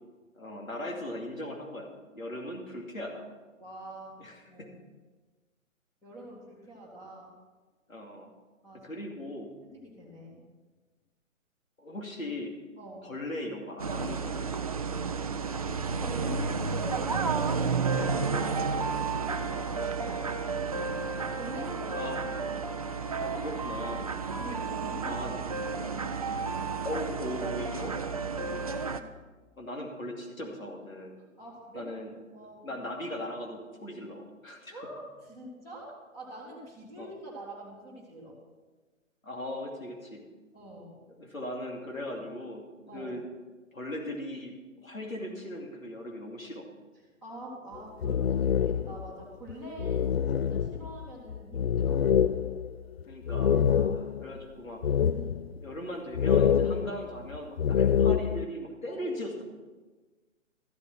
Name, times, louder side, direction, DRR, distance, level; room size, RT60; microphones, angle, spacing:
voice 1, 0.3-1.9 2.1-3.3 4.2-4.7 7.9-8.3 8.8-9.5 11.8-12.5 13.0-14.5 21.9-22.5 23.2-24.1 25.0-25.4 26.8-28.6 29.6-31.2 31.7-32.1 32.6-34.7 37.0-37.1 39.2-40.2 41.2-43.2 43.7-46.7 53.1-54.8 55.6-59.4, left 1 dB, 85° left, 1 dB, 2.5 m, -38 dB
voice 2, 3.6-4.2 4.5-4.7 6.0-7.3 8.6-8.9 9.7-10.4 12.8-13.1 15.9-22.1 24.2-25.2 28.3-28.6 31.2-31.9 32.3-32.7 34.7-38.4 40.5-41.0 42.9-43.1 47.2-50.1 50.3-52.0 54.3-54.4 55.1-55.5 57.8-57.9 58.9-59.2, right 1 dB, 10° left, -6 dB, 2.2 m, -45 dB
sound 1, 13.8-29.0, right 5 dB, 30° right, 0.4 m, -32 dB
sound 2, 47.7-49.1 49.5-49.6 49.8-54.3 54.8-55.6 56.1-58.4, left 8 dB, 50° left, 0.4 m, -26 dB
14.0 x 8.5 x 6.0 m, 1.3 s
figure-of-eight pair, 135°, 40 cm